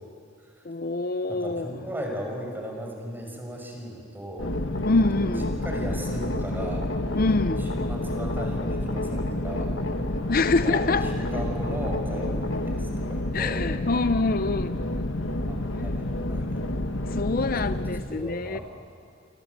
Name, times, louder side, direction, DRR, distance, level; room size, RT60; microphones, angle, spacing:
voice 1, 0.6-1.7 4.9-5.5 7.1-7.6 10.3-11.1 13.3-14.8 17.1-18.6, left 3 dB, 50° left, 0.6 m, -25 dB
voice 2, 1.3-4.6 5.1-5.3 5.6-6.9 7.6-9.7 10.6-13.7 15.5-16.7 17.4-18.6, equal, 10° right, 5.8 m, -37 dB
sound 1, 4.4-18.0, left 1 dB, 90° left, 1.6 m, -29 dB
29.5 x 24.5 x 8.1 m
head